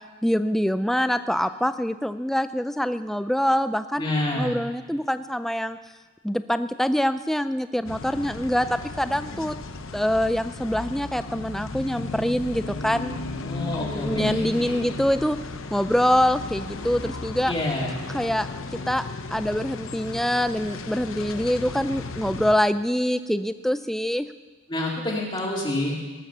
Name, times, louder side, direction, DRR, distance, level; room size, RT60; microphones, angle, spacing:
voice 1, 0.2-5.8 6.2-9.5 9.9-13.2 13.8-15.4 15.7-17.5 18.1-18.5 18.7-19.1 19.3-24.3, equal, ahead, 11 dB, 0.3 m, -25 dB
voice 2, 4.0-4.5 13.4-14.8 17.5-18.0 24.7-25.9, left 1 dB, 20° left, -3 dB, 2.1 m, -28 dB
sound 1, 7.8-22.5, left 3 dB, 60° left, 0.8 m, -35 dB
19.0 x 7.5 x 6.7 m, 1.3 s
head